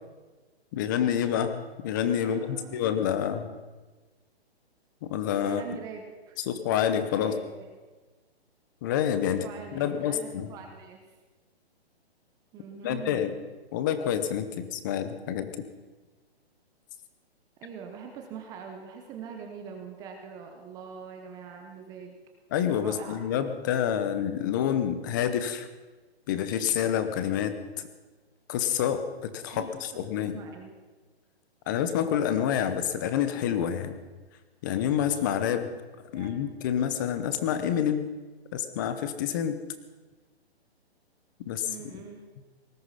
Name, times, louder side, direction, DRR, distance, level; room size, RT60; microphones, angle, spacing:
voice 1, 0.7-3.5 5.0-5.6 6.4-7.3 8.8-10.5 12.8-13.3 13.7-15.5 22.5-25.7 26.3-27.9 28.5-30.4 31.7-34.0 34.6-35.7 36.1-38.1 38.5-39.6 41.5-42.0, left 9 dB, 20° left, 10 dB, 0.7 m, -28 dB
voice 2, 2.2-2.9 5.3-6.4 7.2-7.7 9.4-11.0 12.5-13.4 17.6-22.2 22.8-23.2 29.5-29.7 29.9-30.7 35.7-35.8 36.1-36.5 41.6-42.2, right 6 dB, 10° right, 3 dB, 0.8 m, -43 dB
19.0 x 13.5 x 5.7 m, 1.3 s
hypercardioid pair, 165°, 32 cm